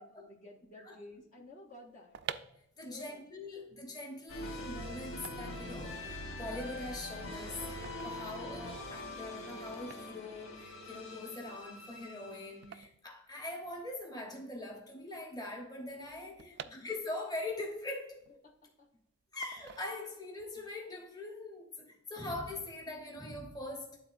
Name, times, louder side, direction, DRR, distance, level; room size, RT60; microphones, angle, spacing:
voice 1, 0.0-2.2 2.8-3.2 16.4-16.9 18.4-18.9, left 2 dB, 40° left, 0.9 m, -54 dB
sound 1, 1.9-14.0 14.3-14.4 14.6-17.4 17.8-18.9 19.4-20.4 20.8-21.1, right 9 dB, 55° right, 0.3 m, -50 dB
voice 2, 2.8-7.6 8.0-18.3 19.3-24.0, left 2 dB, 20° left, 1.1 m, -42 dB
sound 2, 4.3-12.7, left 1 dB, 65° left, 1.5 m, -43 dB
11.0 x 3.9 x 2.6 m
head